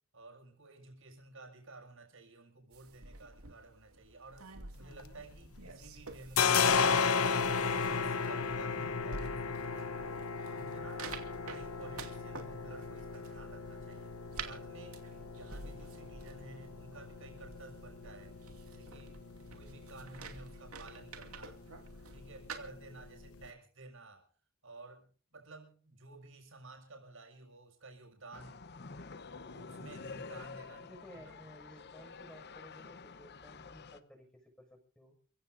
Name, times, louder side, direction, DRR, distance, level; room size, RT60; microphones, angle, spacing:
voice 1, 0.1-7.1 7.6-15.0 15.3-18.4 18.6-21.7 22.1-24.3 24.6-28.7 29.3-31.2, right 3 dB, 65° right, 4 dB, 7.3 m, -53 dB
sound 1, 2.7-22.6, right 4 dB, 85° right, 2.6 m, -50 dB
sound 2, 4.8-5.7 6.0-23.5, left 5 dB, 85° left, 1.1 m, -35 dB
sound 3, 28.3-34.0, left 4 dB, 50° left, 1.1 m, -48 dB
voice 2, 30.8-35.2, equal, 5° left, 5 dB, 6.3 m, -56 dB
29.5 x 16.0 x 2.7 m, 0.39 s
head